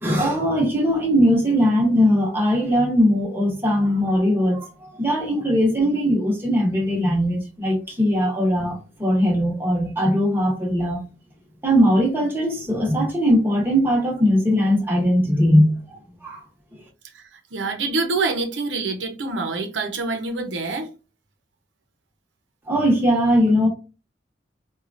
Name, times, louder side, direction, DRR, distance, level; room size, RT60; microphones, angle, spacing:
voice 1, 0.0-11.0 11.6-16.4 22.7-23.7, equal, 10° right, 0.9 m, -20 dB
voice 2, 17.1-20.9, right 3 dB, 85° right, 0.7 m, -26 dB
4.3 x 2.3 x 2.5 m
head